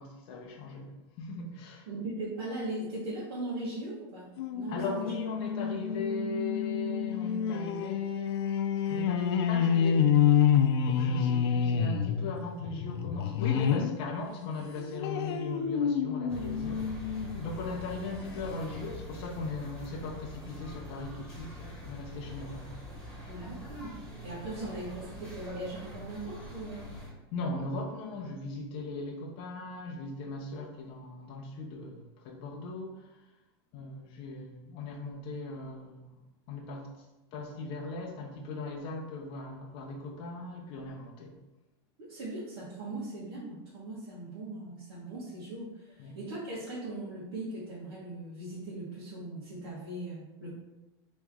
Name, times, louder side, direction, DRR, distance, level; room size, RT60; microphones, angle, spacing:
voice 1, 0.0-1.9 4.7-8.5 8.9-10.0 10.8-22.8 27.3-33.1 33.7-36.2 36.5-36.9 37.3-41.4 46.0-46.2, left 3 dB, 40° left, -1 dB, 0.6 m, -38 dB
voice 2, 1.9-5.1 23.2-23.9 24.2-26.9 42.0-50.5, right 2 dB, 75° right, -9 dB, 1.3 m, -39 dB
sound 1, 4.4-14.0 14.4-17.5 18.0-18.1 18.3-18.4, left 8 dB, 75° left, 0.4 m, -28 dB
sound 2, 16.3-27.1, left 1 dB, 5° left, 1.3 m, -44 dB
3.1 x 3.0 x 3.6 m, 1.0 s
supercardioid pair, 145°, 13 cm